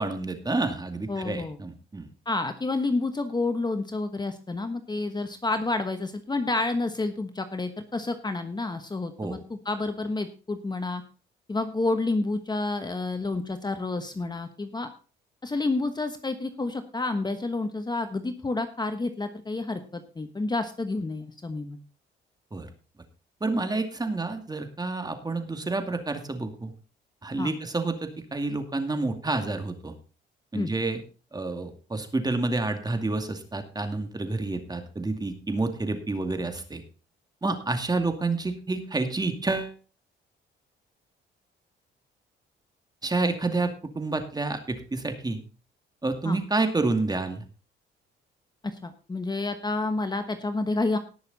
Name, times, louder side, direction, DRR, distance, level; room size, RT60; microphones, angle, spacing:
voice 1, 0.0-2.1 9.2-9.4 22.5-22.7 23.4-26.7 27.2-29.9 30.5-31.0 31.3-36.8 37.4-39.7 43.0-45.4 46.0-47.4, right 3 dB, 20° right, 7 dB, 2.3 m, -29 dB
voice 2, 1.1-1.6 2.3-11.0 11.5-14.9 15.4-21.8 27.4-27.5 30.5-30.7 37.4-37.6 46.2-46.4 48.6-51.0, left 3 dB, 20° left, 8 dB, 1.2 m, -29 dB
18.5 x 6.6 x 4.1 m, 0.37 s
cardioid pair, 90°, 20 cm